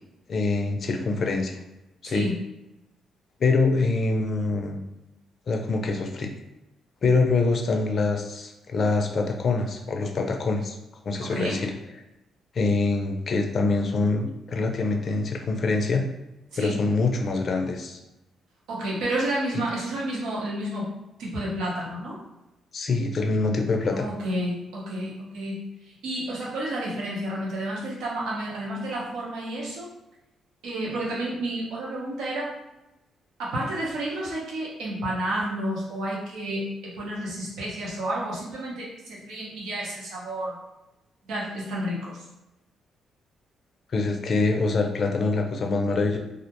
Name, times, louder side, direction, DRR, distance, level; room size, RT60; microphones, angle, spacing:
voice 1, 0.3-1.6 2.0-2.3 3.4-4.8 5.5-6.3 7.0-10.8 11.0-11.7 12.5-16.0 16.6-18.0 19.5-19.6 22.7-24.0 43.9-46.2, left 3 dB, 50° left, 3 dB, 0.4 m, -25 dB
voice 2, 11.2-11.6 16.5-16.8 18.7-20.9 21.2-22.2 23.9-29.9 30.6-32.5 33.4-40.6 41.3-42.2, right 1 dB, 85° right, -5 dB, 0.8 m, -31 dB
2.4 x 2.1 x 2.8 m, 0.95 s
cardioid pair, 90°, 0 cm